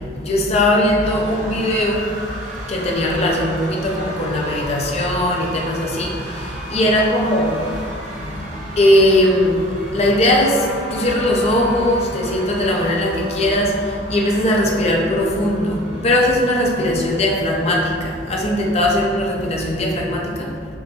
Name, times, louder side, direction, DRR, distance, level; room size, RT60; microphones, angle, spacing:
voice 1, 0.2-2.1 2.7-6.1 6.7-7.5 8.7-9.6 9.9-10.6 10.9-13.7 14.1-15.8 16.0-18.0 18.3-20.5, left 1 dB, 35° left, -1 dB, 0.5 m, -18 dB
sound 1, 1.0-20.1, right 1 dB, 45° right, 0.8 m, -36 dB
Trumpet, 10.3-16.2, left 1 dB, 70° left, 0.8 m, -37 dB
5.3 x 3.0 x 2.9 m, 2.3 s
head